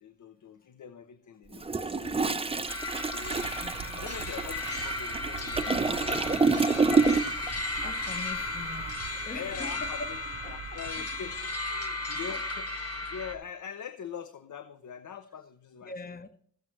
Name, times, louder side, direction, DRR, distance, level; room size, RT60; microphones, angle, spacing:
voice 1, 0.0-2.7 3.1-7.0 7.3-7.4 7.8-8.0 8.3-8.5 9.3-10.2 10.5-16.0, left 7 dB, 65° left, 0.6 m, -44 dB
Toilet flush, 1.5-7.5 7.8-8.0, right 4 dB, 20° right, 0.5 m, -28 dB
sound 1, 2.7-13.4, left 2 dB, 50° left, 1.1 m, -35 dB
sound 2, 3.2-11.8, right 9 dB, 75° right, 0.5 m, -47 dB
voice 2, 3.6-4.0 7.8-10.1 10.4-11.0 15.8-16.3, left 3 dB, 30° left, 0.7 m, -43 dB
15.0 x 7.3 x 3.1 m
wide cardioid pair, 85°, 32 cm